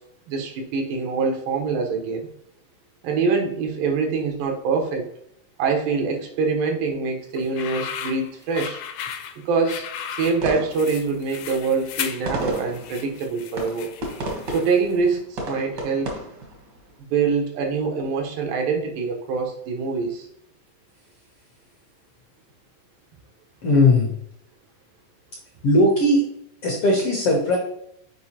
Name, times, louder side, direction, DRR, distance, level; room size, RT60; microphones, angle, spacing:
voice 1, 0.3-2.3 3.0-5.1 5.6-8.8 9.5-13.9 14.5-16.2 17.0-20.3, right 4 dB, 90° right, 2 dB, 2.7 m, -24 dB
sound 1, 7.4-14.9, left 8 dB, 90° left, 2.3 m, -35 dB
sound 2, 10.2-17.0, right 1 dB, 65° right, 1.0 m, -34 dB
voice 2, 23.6-24.1 25.6-26.2 26.6-27.6, left 1 dB, 70° left, -1 dB, 1.3 m, -18 dB
6.9 x 4.7 x 2.9 m, 0.73 s
omnidirectional pair, 3.9 m